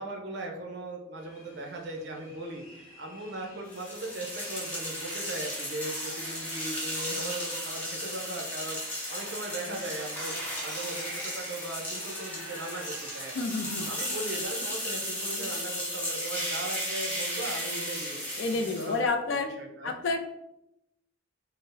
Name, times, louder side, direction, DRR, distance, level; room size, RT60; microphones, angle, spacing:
voice 1, 0.0-13.3 13.9-18.2 18.5-19.9, right 2 dB, 55° right, 1 dB, 0.5 m, -38 dB
sound 1, 1.1-14.4, left 1 dB, 80° left, 1.0 m, -52 dB
sound 2, 3.7-19.0, equal, 5° left, 0.6 m, -35 dB
voice 2, 13.3-13.9 18.4-19.5 19.8-20.2, left 3 dB, 60° left, 7 dB, 0.3 m, -29 dB
2.6 x 2.0 x 3.8 m, 0.85 s
head